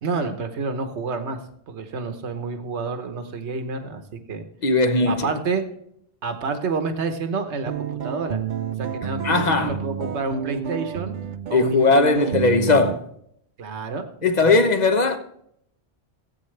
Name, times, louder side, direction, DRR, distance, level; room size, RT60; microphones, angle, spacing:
voice 1, 0.0-1.4 1.7-4.4 5.1-5.7 6.2-8.4 8.8-11.2 11.5-12.4 13.6-14.6, right 4 dB, 85° right, 1.4 m, -29 dB
voice 2, 4.6-5.3 9.2-9.8 11.5-13.1 14.2-15.2, left 3 dB, 40° left, 1.0 m, -19 dB
sound 1, 7.7-13.0, right 8 dB, 55° right, 0.6 m, -29 dB
16.5 x 8.5 x 3.3 m
omnidirectional pair, 1.1 m